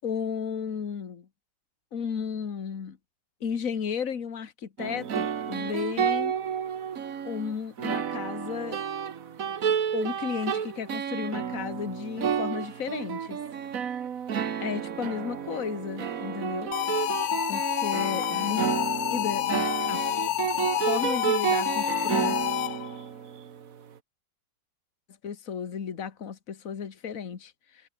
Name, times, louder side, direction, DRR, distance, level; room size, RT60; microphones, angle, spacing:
voice 1, 0.0-1.3 1.9-3.0 3.4-6.3 7.2-8.8 9.9-13.4 14.6-16.8 17.5-18.6 19.1-20.1 20.8-22.4 25.2-27.5, left 7 dB, 50° left, 2.0 m, -33 dB
sound 1, 4.8-23.7, right 8 dB, 55° right, 1.6 m, -31 dB
sound 2, 16.7-23.0, left 14 dB, 65° left, 1.0 m, -29 dB
omnidirectional pair, 1.9 m